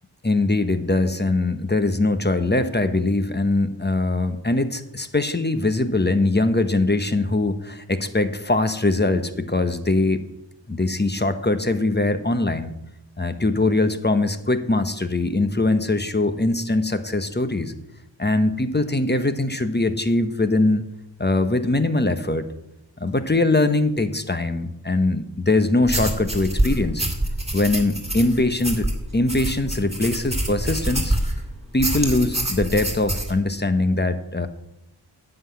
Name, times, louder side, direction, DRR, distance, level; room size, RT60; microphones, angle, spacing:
voice 1, 0.2-10.2 10.7-12.7 13.2-17.7 18.2-20.9 21.2-22.5 23.0-27.1 27.5-28.9 29.1-31.2 31.7-34.5, left 2 dB, 20° left, 10 dB, 0.9 m, -22 dB
sound 1, 25.9-31.4 31.8-33.3, right 1 dB, 15° right, 2.3 m, -26 dB
10.5 x 5.9 x 8.4 m, 0.86 s
wide cardioid pair, 60°, 45 cm